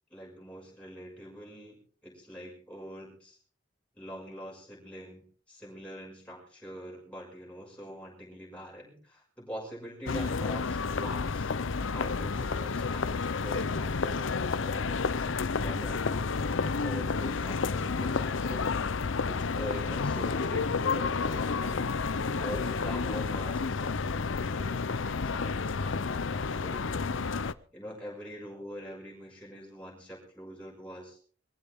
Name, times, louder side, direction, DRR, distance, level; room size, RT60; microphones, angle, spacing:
voice 1, 0.1-3.4 4.0-11.5 11.9-18.7 19.3-27.0 27.7-31.2, equal, 5° left, -3 dB, 6.1 m, -44 dB
sound 1, 10.1-27.5, left 4 dB, 80° left, 0.7 m, -30 dB
22.5 x 15.0 x 3.7 m, 0.41 s
head